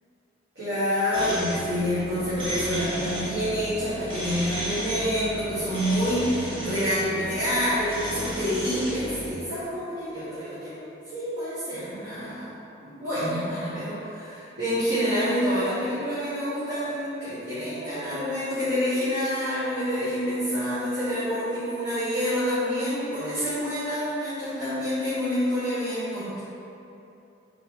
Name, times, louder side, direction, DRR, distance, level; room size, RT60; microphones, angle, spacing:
voice 1, 0.5-12.5 12.8-26.4, equal, 65° right, -13 dB, 1.2 m, -27 dB
sound 1, 1.1-9.3, equal, 25° right, 0.8 m, -34 dB
3.7 x 3.5 x 3.2 m, 2.8 s
head